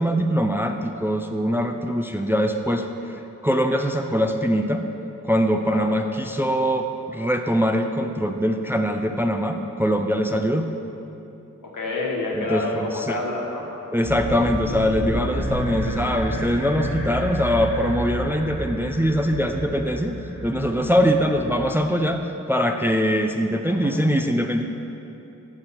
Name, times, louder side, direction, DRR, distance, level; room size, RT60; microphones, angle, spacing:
voice 1, 0.0-2.9 3.4-4.8 5.2-10.7 12.4-13.2 13.9-20.2 20.4-22.2 22.5-24.6, equal, 5° right, 5 dB, 0.4 m, -22 dB
voice 2, 11.6-13.7 23.7-23.9, left 2 dB, 85° left, -2 dB, 1.3 m, -28 dB
sound 1, 14.0-22.1, equal, 20° left, 1.7 m, -31 dB
6.7 x 6.1 x 5.7 m, 2.9 s
wide cardioid pair, 100°, 31 cm